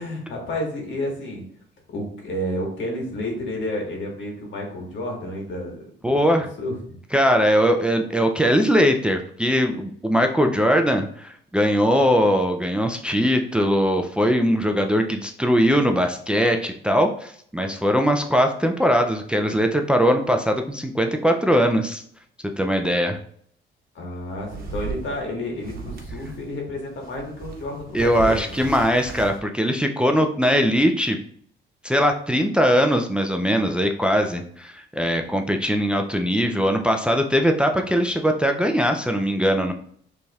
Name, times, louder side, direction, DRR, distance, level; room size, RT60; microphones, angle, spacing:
voice 1, 0.0-1.4 1.9-6.2 6.6-7.0 23.9-28.7, left 1 dB, 70° left, 0 dB, 1.6 m, -31 dB
voice 2, 6.0-6.5 7.1-22.0 22.6-23.2 27.9-31.2 31.8-39.7, equal, 5° right, 4 dB, 0.4 m, -20 dB
sound 1, 24.2-26.5 26.9-29.4, right 4 dB, 50° right, 1.1 m, -36 dB
6.6 x 3.3 x 2.4 m, 0.62 s
cardioid pair, 90°, 20 cm